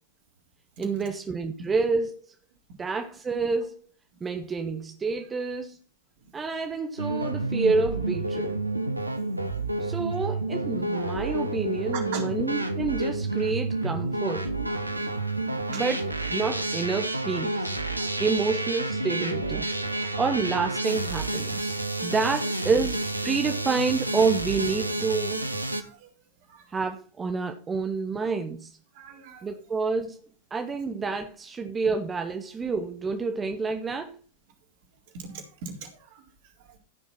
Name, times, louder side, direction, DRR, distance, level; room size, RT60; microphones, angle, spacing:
voice 1, 0.8-2.3 2.8-3.8 4.2-5.8 6.3-8.6 9.8-14.5 15.7-16.0 16.3-17.8 18.2-21.7 22.0-25.5 26.7-28.7 29.4-30.2 30.5-34.2, right 4 dB, 15° right, 1.4 m, -28 dB
sound 1, 7.0-25.8, right 2 dB, 85° right, 1.3 m, -29 dB
voice 2, 11.9-12.2 15.7-15.8 25.8-26.1 26.5-26.7 28.9-29.5 35.1-36.8, right 6 dB, 50° right, 3.9 m, -41 dB
15.5 x 6.2 x 5.8 m
figure-of-eight pair, 90°, 0 cm